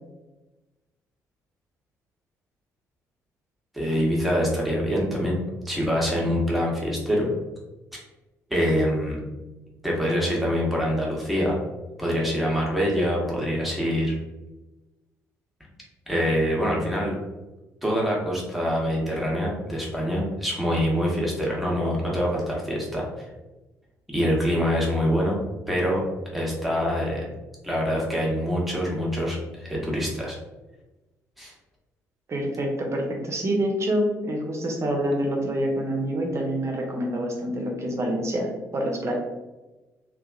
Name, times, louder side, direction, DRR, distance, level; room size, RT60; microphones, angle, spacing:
voice 1, 3.7-5.4 5.6-7.3 8.5-9.2 9.8-11.6 12.0-14.2 16.1-17.2 17.8-23.3 24.1-25.4 25.7-26.0 26.3-27.3 27.6-30.4 31.4-31.5, equal, ahead, -4 dB, 1.0 m, -25 dB
voice 2, 32.3-39.1, right 1 dB, 35° right, 0 dB, 0.7 m, -26 dB
2.8 x 2.3 x 2.3 m, 1.1 s
figure-of-eight pair, 45°, 8 cm